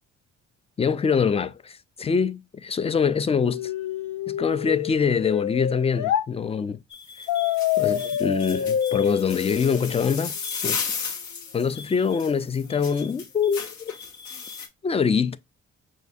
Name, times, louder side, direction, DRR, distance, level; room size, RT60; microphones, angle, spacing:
voice 1, 0.8-3.7 4.3-6.8 7.8-10.4 10.6-10.8 11.5-13.9 14.8-15.4, left 6 dB, 20° left, 0.3 m, -24 dB
sound 1, 3.4-6.3 7.3-10.3, left 10 dB, 80° left, 0.7 m, -27 dB
sound 2, 6.9-14.7, left 5 dB, 65° left, 1.1 m, -35 dB
6.0 x 2.4 x 2.6 m
cardioid pair, 90°, 30 cm